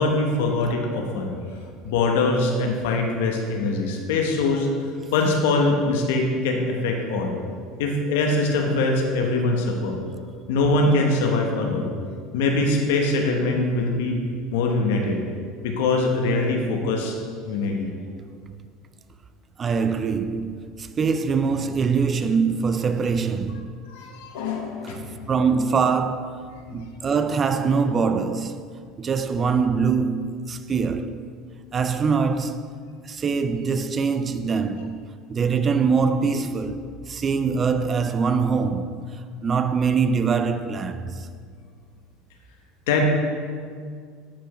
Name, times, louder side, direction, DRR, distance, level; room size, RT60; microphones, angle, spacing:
voice 1, 0.0-1.3 1.8-4.7 5.1-7.3 7.8-10.0 10.5-11.9 12.3-14.2 14.5-15.2 15.6-17.1 17.4-17.9 23.9-25.1 26.7-26.8 42.9-43.0, left 2 dB, 85° left, 1.0 m, -23 dB
voice 2, 19.6-23.7 24.8-25.0 25.3-28.6 29.0-31.3 31.7-32.7 33.0-35.0 35.3-41.3, right 5 dB, 30° right, 0.4 m, -23 dB
11.5 x 4.5 x 3.1 m
supercardioid pair, 110°, 0 cm